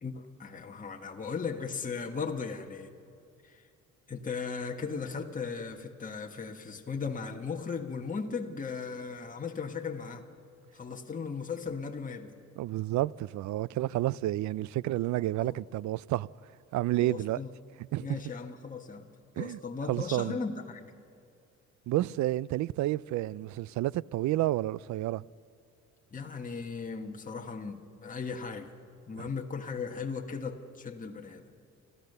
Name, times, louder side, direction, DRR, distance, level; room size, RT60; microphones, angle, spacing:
voice 1, 0.0-2.9 3.4-3.6 4.1-10.2 10.7-12.3 15.4-15.5 17.0-17.5 18.0-19.1 19.4-20.9 26.1-28.8 29.1-31.5, left 5 dB, 25° left, 1.4 m, -37 dB
voice 2, 12.6-16.3 16.7-17.4 17.9-18.1 19.4-19.6 19.9-20.4 21.9-25.2 29.2-29.3, right 15 dB, 70° right, 0.4 m, -30 dB
29.5 x 14.0 x 6.7 m
cardioid pair, 90°, 30 cm